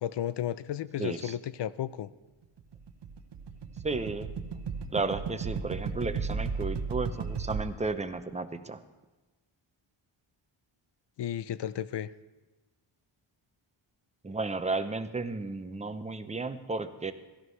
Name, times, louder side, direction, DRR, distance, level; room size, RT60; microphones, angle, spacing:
voice 1, 0.0-2.1 11.2-12.1, left 10 dB, 60° left, 17 dB, 0.5 m, -33 dB
voice 2, 1.0-1.4 3.8-4.3 4.9-8.8 14.2-17.1, right 3 dB, 15° right, 9 dB, 0.6 m, -33 dB
sound 1, 2.6-7.6, right 5 dB, 55° right, 0.9 m, -35 dB
16.5 x 13.0 x 3.2 m, 1.2 s
wide cardioid pair, 90°, 50 cm